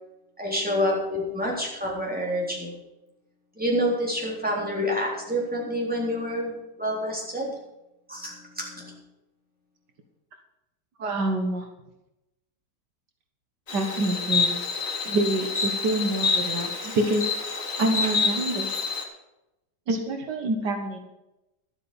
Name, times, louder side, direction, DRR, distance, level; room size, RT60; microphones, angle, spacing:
voice 1, 0.4-2.7 3.6-7.5 8.1-9.0, equal, 5° right, -3 dB, 3.7 m, -28 dB
voice 2, 11.0-11.7 13.7-14.5 15.0-17.2 17.8-18.7 19.9-21.0, right 2 dB, 75° right, 5 dB, 2.0 m, -26 dB
Insect, 13.7-19.0, left 4 dB, 50° left, 2.1 m, -27 dB
12.5 x 8.5 x 6.9 m, 0.93 s
omnidirectional pair, 1.8 m